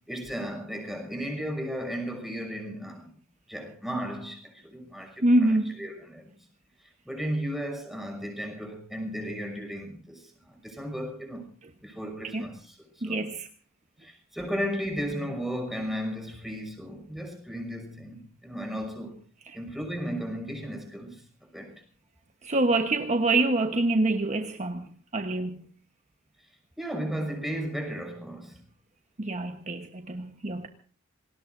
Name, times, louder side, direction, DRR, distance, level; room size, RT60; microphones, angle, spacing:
voice 1, 0.1-3.1 3.5-5.5 5.8-6.3 7.0-11.5 11.8-13.3 14.0-19.2 19.5-21.7 26.8-28.6, equal, ahead, 5.9 m, -35 dB
voice 2, 5.2-5.8 12.3-12.5 13.0-13.5 22.4-25.6 29.2-30.7, right 2 dB, 35° right, 1.1 m, -26 dB
28.0 x 19.5 x 2.6 m
head